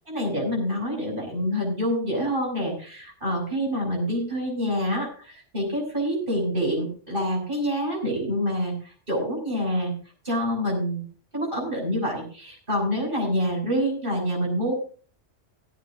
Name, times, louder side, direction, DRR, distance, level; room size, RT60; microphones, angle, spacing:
voice 1, 0.1-9.9 10.2-11.0 11.3-14.7, equal, 45° right, -2 dB, 6.7 m, -27 dB
17.5 x 13.5 x 2.6 m, 0.41 s
omnidirectional pair, 1.2 m